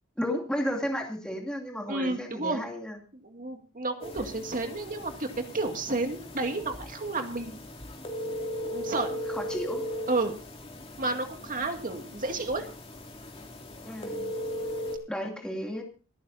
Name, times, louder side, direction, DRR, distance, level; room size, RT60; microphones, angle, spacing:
voice 1, 0.2-3.0 4.2-4.3 9.3-9.8 13.8-14.3 15.1-15.8, equal, 5° left, 1 dB, 2.6 m, -33 dB
voice 2, 1.9-2.6 3.2-5.3 5.5-7.6 8.6-9.2 10.1-10.3 11.0-12.7, right 2 dB, 40° right, 5 dB, 2.2 m, -31 dB
sound 1, 4.0-15.0, equal, 30° left, 2.6 m, -38 dB
27.5 x 9.3 x 2.7 m, 0.35 s
head